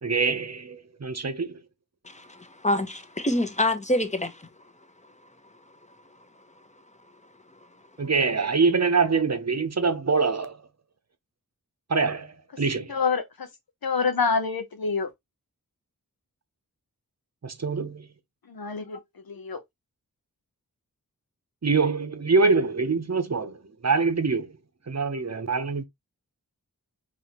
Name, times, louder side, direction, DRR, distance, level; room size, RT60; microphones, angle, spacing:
voice 1, 0.0-1.6 8.0-10.6 11.9-12.9 17.4-18.1 21.6-24.5 24.9-25.8, right 4 dB, 45° right, 0.8 m, -24 dB
voice 2, 2.0-4.3, left 1 dB, 20° left, 0.9 m, -26 dB
voice 3, 12.9-13.5 13.8-15.1 18.5-19.0 19.4-19.6, left 5 dB, 80° left, 0.9 m, -26 dB
4.1 x 3.0 x 2.9 m
wide cardioid pair, 50°, 36 cm